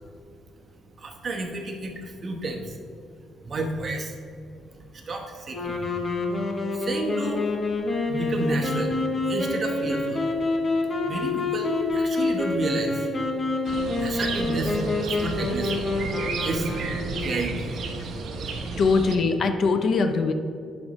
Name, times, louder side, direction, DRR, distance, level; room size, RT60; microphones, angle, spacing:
voice 1, 1.0-2.8 3.4-4.2 4.8-5.8 6.7-7.5 8.1-8.9 9.3-10.3 11.0-13.1 14.0-15.9 16.4-16.7 17.2-17.7, right 2 dB, 35° right, 2 dB, 1.0 m, -31 dB
sound 1, 5.5-17.4, left 2 dB, 30° left, 0.9 m, -27 dB
sound 2, 13.6-19.2, right 4 dB, 60° right, 0.8 m, -32 dB
voice 2, 18.8-20.3, left 4 dB, 50° left, 7 dB, 0.5 m, -21 dB
10.5 x 5.2 x 3.1 m, 2.5 s
cardioid pair, 120°, 0 cm